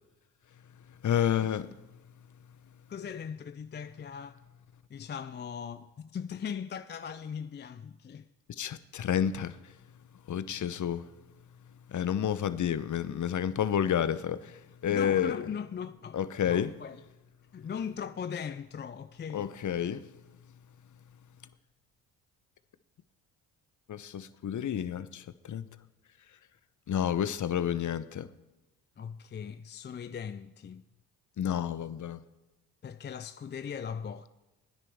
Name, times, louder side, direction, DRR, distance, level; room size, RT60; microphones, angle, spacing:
voice 1, 1.0-1.7 8.5-9.6 10.3-11.1 11.9-15.4 16.1-16.7 19.3-20.1 23.9-25.7 26.9-28.3 31.4-32.2, left 9 dB, 40° left, 0.8 m, -30 dB
voice 2, 2.9-4.4 4.9-8.2 14.9-17.0 17.5-19.5 29.0-30.8 32.8-34.3, left 7 dB, 25° left, 0.5 m, -39 dB
18.5 x 9.9 x 3.6 m
hypercardioid pair, 55°, 45 cm